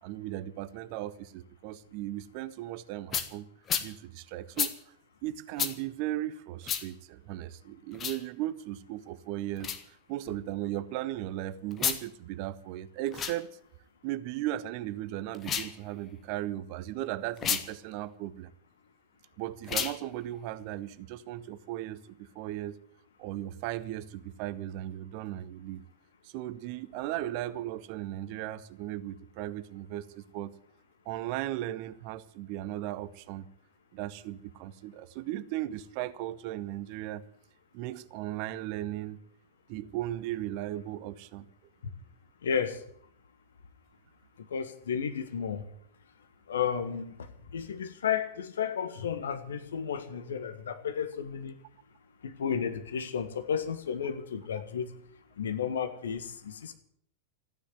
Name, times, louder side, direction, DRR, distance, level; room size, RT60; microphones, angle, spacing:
voice 1, 0.0-3.5 3.8-4.8 5.2-13.5 14.0-18.5 19.4-22.8 23.2-25.8 26.2-30.5 31.1-33.5 33.9-37.2 37.7-39.2 39.7-41.5, right 14 dB, 45° right, 0.8 m, -37 dB
sound 1, 3.1-3.3 3.7-3.9 4.6-4.7 5.6-5.7 6.6-6.8 7.9-8.2 9.6-9.8 11.7-12.0 13.1-13.4 15.3-15.7 17.4-17.6 19.6-20.0, left 8 dB, 25° left, 1.5 m, -30 dB
voice 2, 42.4-42.8 44.5-45.6 46.5-47.1 47.5-51.5 52.2-54.9 55.4-56.7, left 7 dB, 65° left, 1.6 m, -32 dB
14.5 x 10.0 x 9.2 m
figure-of-eight pair, 90°, 0 cm